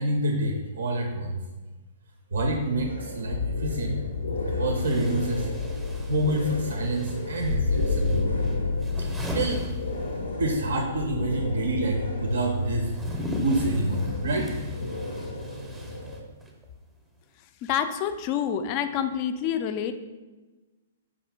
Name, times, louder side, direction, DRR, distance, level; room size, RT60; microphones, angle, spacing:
voice 1, 0.0-1.4 2.3-4.0 4.5-5.5 6.1-8.2 9.3-9.7 10.4-12.9 13.4-14.6, right 2 dB, 60° right, 3 dB, 0.4 m, -27 dB
sound 1, 2.3-16.2, left 3 dB, 80° left, 0.6 m, -31 dB
sound 2, 3.8-3.9 4.7-10.5 10.8-16.7, equal, 10° right, 0.6 m, -39 dB
voice 2, 17.6-19.9, left 9 dB, 35° left, 8 dB, 0.3 m, -27 dB
4.9 x 2.4 x 3.4 m, 1.2 s
figure-of-eight pair, 115°, 0 cm